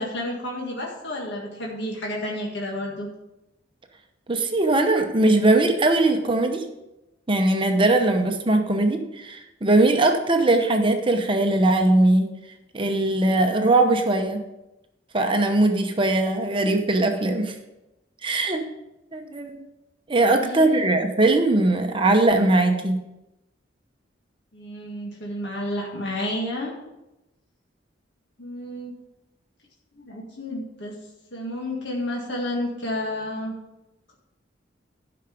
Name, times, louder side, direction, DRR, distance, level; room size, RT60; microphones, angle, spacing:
voice 1, 0.0-3.1 20.2-20.9 24.5-26.7 28.4-29.0 30.0-31.0 31.3-33.5, left 1 dB, 65° left, -2 dB, 1.8 m, -31 dB
voice 2, 4.3-6.6 7.3-12.3 12.7-14.4 15.1-17.5 18.2-18.6 19.1-19.6 20.1-23.0, right 2 dB, 30° right, 4 dB, 0.8 m, -20 dB
12.0 x 5.9 x 5.1 m, 0.96 s
head